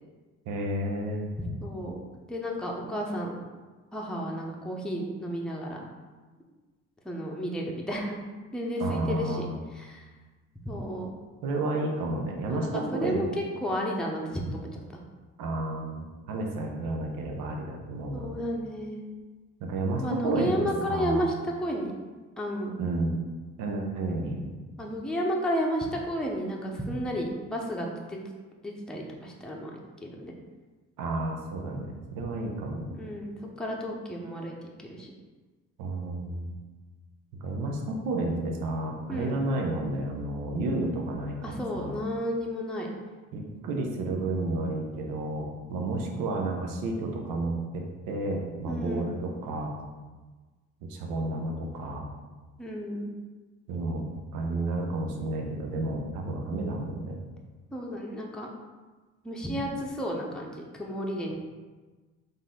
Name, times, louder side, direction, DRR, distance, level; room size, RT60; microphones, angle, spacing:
voice 1, 0.5-1.3 8.8-9.5 11.4-13.2 15.4-18.3 19.6-21.3 22.8-23.2 23.6-24.5 31.0-33.0 35.8-36.5 37.4-42.0 43.3-49.7 50.8-52.1 53.7-54.0 54.3-57.2, right 2 dB, 80° right, 1 dB, 0.7 m, -31 dB
voice 2, 1.6-2.0 2.3-3.4 3.9-5.8 7.0-8.2 8.5-9.5 9.7-10.0 10.7-11.1 12.5-14.8 18.1-19.1 20.0-21.9 22.4-22.8 24.8-28.2 28.6-30.3 32.9-34.5 34.8-35.1 39.1-39.3 41.4-42.9 48.7-49.1 52.6-53.1 57.7-58.5 59.2-61.3, equal, ahead, -1 dB, 0.7 m, -32 dB
4.0 x 2.6 x 3.7 m, 1.3 s
supercardioid pair, 65°, 32 cm